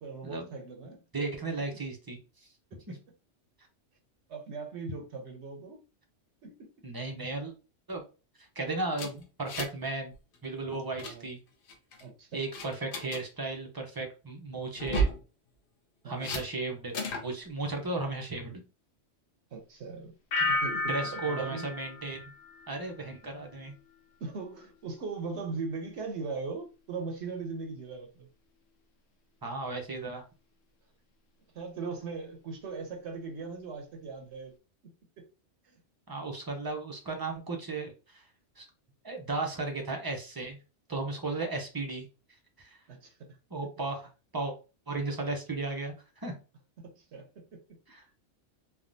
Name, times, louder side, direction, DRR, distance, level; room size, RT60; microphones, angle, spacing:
voice 1, 0.0-1.0 4.3-5.8 6.4-6.7 11.0-11.3 12.0-12.4 16.0-16.3 19.5-20.1 20.5-21.7 24.2-28.3 31.5-34.5 35.2-35.3 42.9-43.4 46.8-47.6, right 4 dB, 70° right, 0.9 m, -39 dB
voice 2, 1.1-2.2 2.9-3.0 6.8-7.5 7.9-8.0 8.4-10.1 10.4-11.4 12.3-15.1 16.0-16.9 17.2-18.6 20.9-22.3 22.7-23.7 29.4-30.2 36.1-38.2 38.6-38.7 39.0-40.6 40.9-42.1 42.6-42.8 43.5-44.1 44.3-44.5 44.9-46.4 47.9-48.0, right 3 dB, 30° right, 0.4 m, -35 dB
sound 1, 8.9-9.9 10.1-10.4 10.7-11.1 11.7-12.0 12.5-13.2 14.7-15.2 16.2-16.4 16.9-17.3, right 2 dB, 55° left, 0.8 m, -32 dB
sound 2, 20.3-23.1 23.5-24.0, left 2 dB, 90° left, 1.0 m, -33 dB
3.4 x 2.3 x 2.5 m
omnidirectional pair, 1.2 m